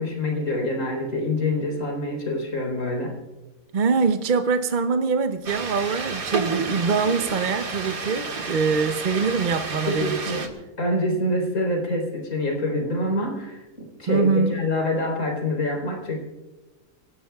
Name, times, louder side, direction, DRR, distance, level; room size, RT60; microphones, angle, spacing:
voice 1, 0.0-3.1 9.9-10.5 10.8-16.2, left 1 dB, 85° left, 4.2 m, -26 dB
voice 2, 3.7-10.4 14.1-14.6, right 5 dB, 45° right, 0.7 m, -23 dB
sound 1, 5.5-10.5, right 4 dB, 85° right, 2.2 m, -31 dB
24.5 x 18.0 x 2.3 m
omnidirectional pair, 1.5 m